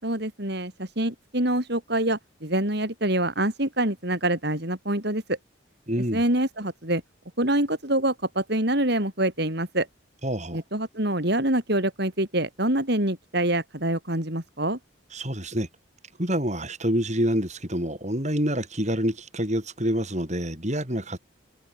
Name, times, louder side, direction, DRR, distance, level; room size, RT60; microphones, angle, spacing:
voice 1, 0.0-5.4 6.1-7.0 7.4-9.9 10.5-14.8, right 1 dB, 55° right, 5.5 m, -25 dB
voice 2, 5.9-6.2 10.2-10.6 15.1-15.7 16.2-21.2, equal, 35° right, 7.3 m, -27 dB
head